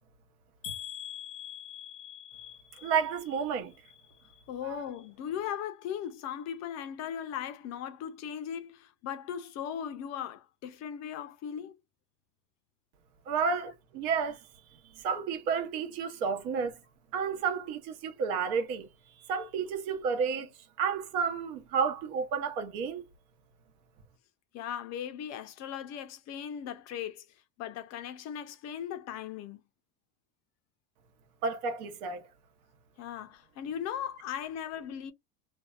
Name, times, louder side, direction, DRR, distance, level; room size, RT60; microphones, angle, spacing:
sound 1, 0.6-4.6 4.9-5.5 6.0-6.1 6.5-6.6, left 11 dB, 75° left, 0.7 m, -45 dB
voice 1, 2.8-3.7 4.6-4.8 13.3-14.4 15.0-16.8 17.1-18.9 19.3-20.5 20.8-23.0 31.4-32.3, right 6 dB, 65° right, 1.0 m, -31 dB
voice 2, 4.5-11.8 24.5-27.3 27.6-29.6 33.0-35.1, left 9 dB, 35° left, 0.5 m, -38 dB
2.6 x 2.2 x 2.3 m
supercardioid pair, 115°, 46 cm